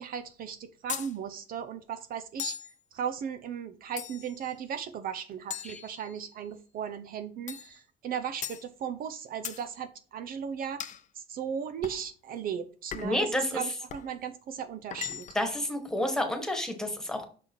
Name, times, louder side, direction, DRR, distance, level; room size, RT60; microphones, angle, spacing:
voice 1, 0.0-2.6 2.9-10.8 11.2-15.3, right 8 dB, 60° right, 10 dB, 0.7 m, -36 dB
sound 1, 0.9-1.1 2.4-2.7 4.0-4.4 5.5-6.4 7.5-7.8 8.4-8.7 9.4-9.7 10.8-11.0 11.8-12.1 12.9-13.2 13.9-14.1 14.9-15.5, left 9 dB, 45° left, 0.6 m, -39 dB
voice 2, 13.0-13.6 15.3-17.2, left 1 dB, 5° left, 5 dB, 1.7 m, -30 dB
6.1 x 5.9 x 3.0 m, 0.40 s
cardioid pair, 110°, 17 cm